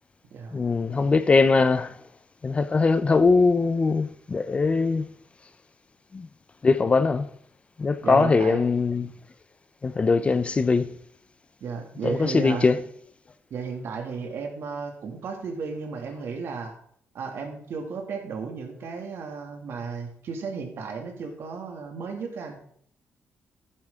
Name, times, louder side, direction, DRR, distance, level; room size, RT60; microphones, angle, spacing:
voice 1, 0.5-1.9 2.4-5.1 6.1-6.3 6.6-7.3 7.8-9.1 9.8-10.9 12.0-12.8, left 4 dB, 25° left, 0.5 m, -21 dB
voice 2, 8.0-8.6 11.6-12.8 13.5-16.7 17.1-22.6, right 5 dB, 65° right, 2.2 m, -34 dB
11.0 x 9.6 x 3.6 m
cardioid pair, 130°, 4 cm